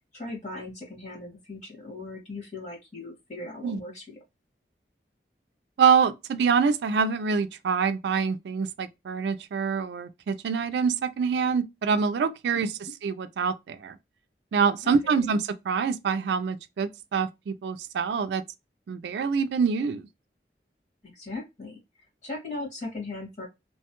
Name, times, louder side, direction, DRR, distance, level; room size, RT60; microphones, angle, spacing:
voice 1, 0.1-4.1 14.8-15.2 21.0-23.4, left 2 dB, 40° left, 1.5 m, -38 dB
voice 2, 5.8-14.0 14.5-18.4 18.9-20.1, right 6 dB, 75° right, 0.3 m, -25 dB
3.1 x 2.2 x 2.8 m
head